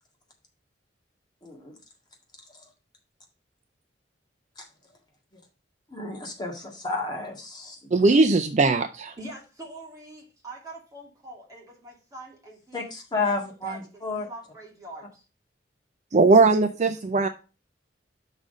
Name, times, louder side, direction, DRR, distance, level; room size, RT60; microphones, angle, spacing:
voice 1, 1.4-1.7 4.6-4.7 5.9-7.8 12.7-14.3, left 3 dB, 25° left, 0 dB, 1.8 m, -31 dB
voice 2, 7.9-9.1 16.1-17.3, right 3 dB, 40° right, 8 dB, 0.5 m, -19 dB
voice 3, 9.2-12.9 13.2-15.2, right 2 dB, 20° right, -2 dB, 2.4 m, -44 dB
6.1 x 4.1 x 6.3 m, 0.32 s
head